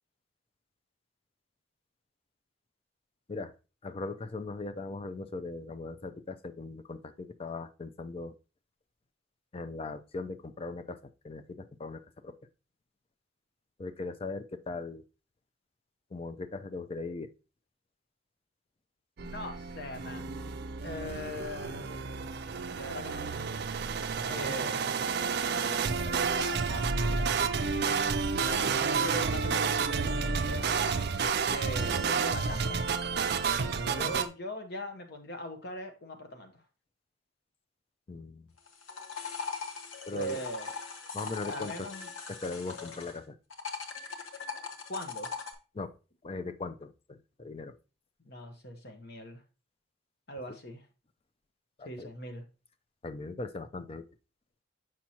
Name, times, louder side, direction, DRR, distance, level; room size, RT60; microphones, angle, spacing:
voice 1, 3.8-8.3 9.5-12.3 13.8-15.0 16.1-17.3 38.1-38.5 40.1-40.4 41.1-41.9 42.3-43.4 45.7-45.9 46.2-47.7 51.8-52.1 53.0-54.1, left 3 dB, 30° left, 11 dB, 0.4 m, -39 dB
voice 2, 19.2-20.4 20.8-22.1 22.7-23.5 24.3-25.0 25.4-27.4 28.4-31.1 31.5-32.8 33.8-36.6 40.1-40.7 41.4-42.1 44.9-45.3 48.2-49.4 50.3-50.8 51.8-52.4, equal, 55° left, 5 dB, 1.1 m, -41 dB
sound 1, 19.2-34.3, right 5 dB, 55° right, 0.4 m, -30 dB
sound 2, 38.6-43.2 43.5-45.5, left 5 dB, 80° left, 1.0 m, -40 dB
6.2 x 5.9 x 2.8 m, 0.31 s
head